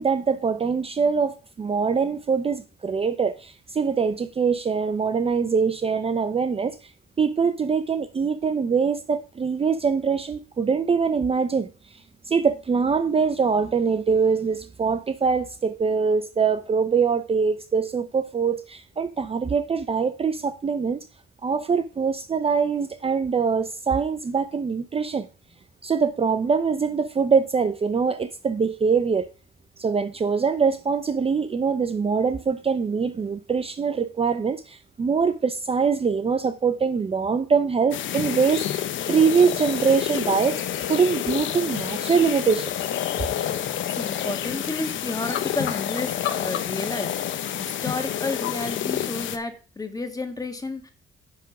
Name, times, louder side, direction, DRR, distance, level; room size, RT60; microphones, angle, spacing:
voice 1, 0.0-6.8 7.2-11.7 12.3-21.1 21.4-25.3 25.8-29.3 29.8-42.7, right 5 dB, 30° right, 0.6 m, -23 dB
sound 1, 37.9-49.4, left 10 dB, 75° left, 0.9 m, -28 dB
voice 2, 43.9-50.9, left 2 dB, 20° left, 1.7 m, -31 dB
9.7 x 3.7 x 5.9 m
cardioid pair, 90°, 20 cm